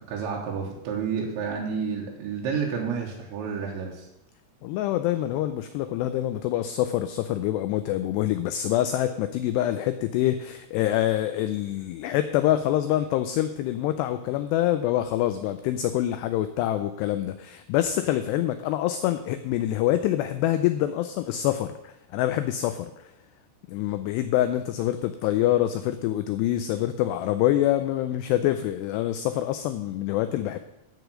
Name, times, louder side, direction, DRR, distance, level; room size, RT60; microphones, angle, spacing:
voice 1, 0.0-4.1, right 6 dB, 80° right, -2 dB, 3.5 m, -30 dB
voice 2, 4.6-23.0 23.7-30.6, left 13 dB, 90° left, 10 dB, 2.4 m, -26 dB
14.0 x 5.1 x 6.3 m, 0.86 s
omnidirectional pair, 5.4 m